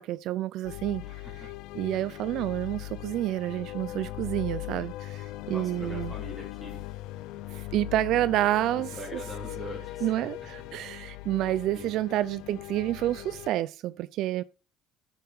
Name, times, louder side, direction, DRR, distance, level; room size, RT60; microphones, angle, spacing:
voice 1, 0.0-1.0 1.7-6.1 7.5-9.2 10.0-14.4, right 14 dB, 65° right, 0.4 m, -29 dB
sound 1, 0.6-13.5, left 17 dB, 75° left, 0.5 m, -39 dB
voice 2, 1.0-1.5 5.5-6.8 8.7-10.3 10.7-11.1 11.7-12.0, equal, 5° left, 3.2 m, -43 dB
10.0 x 5.6 x 3.6 m
cardioid pair, 125°, 0 cm